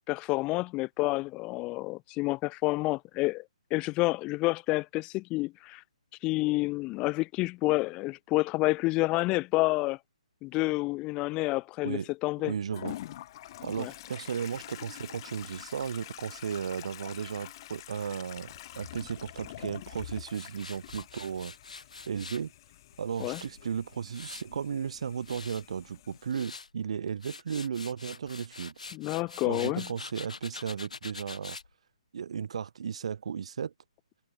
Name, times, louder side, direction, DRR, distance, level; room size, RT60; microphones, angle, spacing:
voice 1, 0.1-3.4 3.7-5.8 6.2-10.0 10.4-12.5 13.8-13.9 23.2-23.4 28.9-29.9, left 21 dB, 25° left, 2.2 m, -29 dB
voice 2, 12.4-13.0 13.6-21.5 22.1-22.5 23.0-28.7 29.4-31.6 32.1-33.7, right 7 dB, 60° right, 2.2 m, -35 dB
Toilet flush, 12.7-26.3, left 14 dB, 40° left, 6.3 m, -46 dB
Tools, 20.3-22.5 22.9-24.6 25.0-25.6 26.1-26.7 27.1-31.7, left 4 dB, 75° left, 6.7 m, -45 dB
figure-of-eight pair, 135°, 4 cm